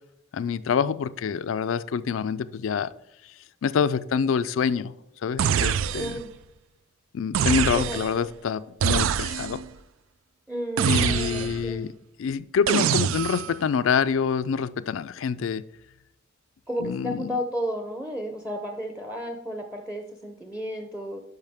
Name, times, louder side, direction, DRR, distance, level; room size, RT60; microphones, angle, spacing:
voice 1, 0.3-2.9 3.6-4.9 5.2-6.2 7.1-9.6 10.8-11.9 12.2-15.6 16.8-17.4, left 6 dB, 70° left, 0.4 m, -26 dB
sound 1, 5.4-6.3 7.3-8.2 8.8-9.7 10.8-11.7 12.7-13.6, right 8 dB, 75° right, 0.3 m, -25 dB
voice 2, 5.9-6.3 7.7-8.0 10.5-11.9 16.7-21.2, equal, 5° right, 0.6 m, -33 dB
12.0 x 5.4 x 3.5 m
head